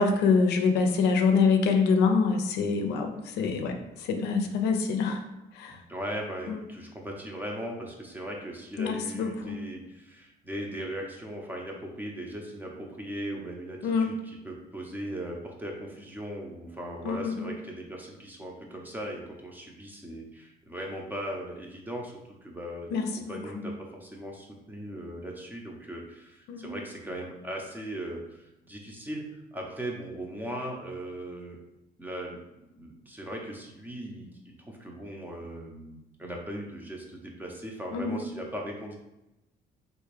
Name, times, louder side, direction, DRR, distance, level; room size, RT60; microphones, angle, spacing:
voice 1, 0.0-5.2 5.6-5.8 6.5-6.6 8.8-9.6 13.8-14.1 17.0-17.5 22.9-23.7 26.5-26.7 37.9-38.2, left 4 dB, 80° left, 5 dB, 0.5 m, -26 dB
voice 2, 5.7-22.1 22.4-22.9 23.3-31.6 32.0-32.4 32.8-39.0, right 1 dB, 10° right, 0 dB, 0.7 m, -38 dB
3.5 x 2.6 x 3.2 m, 0.93 s
cardioid pair, 110°, 17 cm